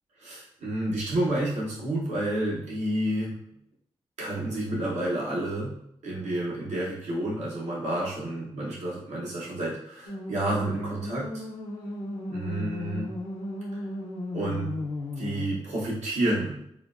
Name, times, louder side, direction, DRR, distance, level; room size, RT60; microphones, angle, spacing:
voice 1, 0.2-3.3 4.2-5.7 6.0-11.4 12.3-13.1 13.7-13.8 14.3-14.7 15.2-16.6, right 1 dB, 85° right, -5 dB, 0.9 m, -30 dB
sound 1, 10.1-15.5, left 2 dB, 90° left, 0.5 m, -35 dB
3.6 x 2.2 x 2.4 m, 0.73 s
supercardioid pair, 40°, 11 cm